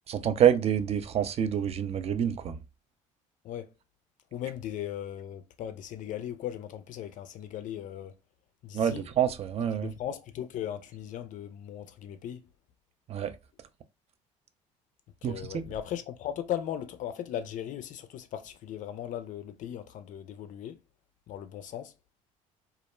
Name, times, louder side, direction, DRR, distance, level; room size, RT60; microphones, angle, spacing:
voice 1, 0.1-2.6 8.7-9.9 13.1-13.3 15.2-15.7, right 9 dB, 40° right, 0.4 m, -27 dB
voice 2, 4.3-8.2 8.6-9.1 9.7-12.5 15.2-20.8 21.3-21.9, left 10 dB, 50° left, 0.4 m, -38 dB
2.3 x 2.1 x 3.0 m
hypercardioid pair, 70°, 17 cm